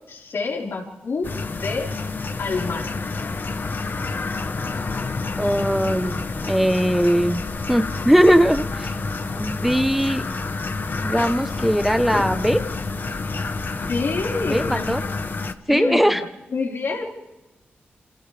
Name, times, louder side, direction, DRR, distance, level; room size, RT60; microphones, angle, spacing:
voice 1, 0.1-1.9 2.4-2.9 13.9-15.0 15.7-16.2 16.5-17.0, left 4 dB, 70° left, -1 dB, 4.9 m, -27 dB
sound 1, 1.2-15.5, left 3 dB, 50° left, 1.2 m, -28 dB
voice 2, 5.4-7.4 7.7-8.9 9.3-10.2 11.0-12.6 14.5-15.0 15.7-16.2, equal, 5° right, 9 dB, 1.1 m, -20 dB
28.0 x 27.0 x 3.5 m, 1.0 s
cardioid pair, 60°, 4 cm